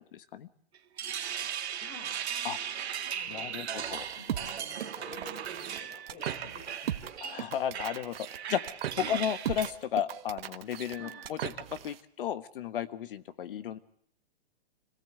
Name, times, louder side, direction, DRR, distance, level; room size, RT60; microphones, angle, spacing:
voice 1, 0.1-0.5 2.4-2.6 3.3-4.0 7.2-8.2 8.5-8.8 9.1-13.8, left 9 dB, 55° left, 13 dB, 1.5 m, -34 dB
sound 1, 0.7-9.7, right 8 dB, 90° right, 2.1 m, -38 dB
voice 2, 1.8-2.2 3.1-7.0 9.0-9.3 10.9-11.2, left 2 dB, 40° left, 3 dB, 6.2 m, -49 dB
sound 2, 3.8-12.0, right 10 dB, 65° right, 1.5 m, -39 dB
27.0 x 17.5 x 8.0 m, 0.70 s
hypercardioid pair, 165°, 32 cm